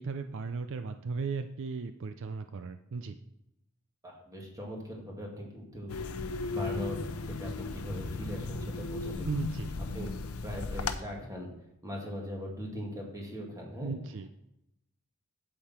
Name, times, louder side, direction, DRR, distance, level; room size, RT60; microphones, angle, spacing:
voice 1, 0.0-3.1 9.2-9.8 13.8-14.3, right 4 dB, 60° right, 9 dB, 0.5 m, -36 dB
voice 2, 4.0-7.0 7.2-9.3 9.9-11.5 11.8-14.0, equal, 15° right, -1 dB, 2.1 m, -40 dB
sound 1, 5.9-11.0, left 3 dB, 75° left, 0.7 m, -36 dB
8.4 x 7.8 x 4.3 m, 0.86 s
head